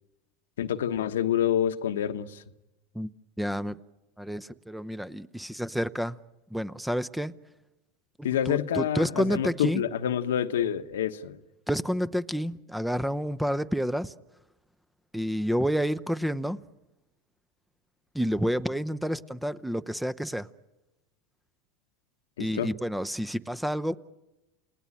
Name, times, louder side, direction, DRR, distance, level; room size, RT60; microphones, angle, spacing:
voice 1, 0.6-2.4 8.2-11.4 22.4-22.7, left 10 dB, 85° left, 1.1 m, -27 dB
voice 2, 3.4-3.8 4.2-6.2 6.5-7.3 8.2-9.8 11.7-14.1 15.1-16.6 18.1-20.5 22.4-24.0, equal, ahead, 0.8 m, -29 dB
29.5 x 18.5 x 8.8 m
hypercardioid pair, 100°, 0 cm